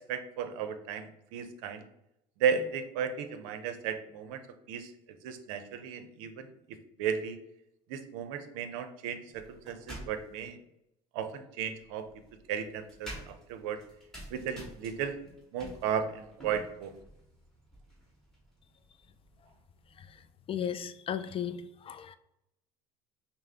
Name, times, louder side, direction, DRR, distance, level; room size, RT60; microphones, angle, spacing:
voice 1, 0.1-1.8 2.4-4.4 4.7-4.9 5.2-6.5 7.0-7.4 7.9-10.6 11.1-12.1 12.5-13.8 14.3-15.2 15.5-16.9, right 7 dB, 80° right, 9 dB, 0.6 m, -34 dB
sound 1, 9.3-10.5 11.6-20.3, right 1 dB, 5° left, 1.4 m, -50 dB
voice 2, 20.5-21.6 21.9-22.2, left 9 dB, 35° left, 12 dB, 0.3 m, -34 dB
5.6 x 2.0 x 3.4 m, 0.84 s
supercardioid pair, 85°, 17 cm